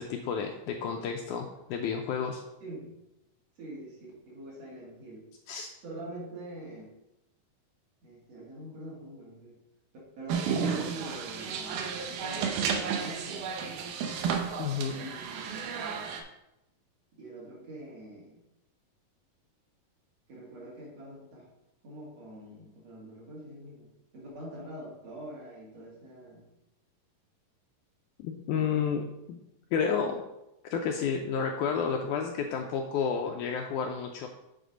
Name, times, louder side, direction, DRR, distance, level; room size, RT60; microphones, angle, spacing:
voice 1, 0.0-2.4 5.5-5.7 14.6-14.9 28.2-29.4 29.7-30.2 30.7-34.3, left 6 dB, 80° left, 3 dB, 1.8 m, -31 dB
voice 2, 3.6-5.3 5.8-6.9 8.0-9.6 10.2-13.6 14.8-16.2 17.1-18.4 20.3-21.5 21.8-23.9 24.1-26.4, right 1 dB, 50° right, -5 dB, 2.8 m, -44 dB
sound 1, 10.3-16.2, right 6 dB, 75° right, 2.1 m, -32 dB
8.1 x 4.3 x 5.1 m, 0.91 s
omnidirectional pair, 3.9 m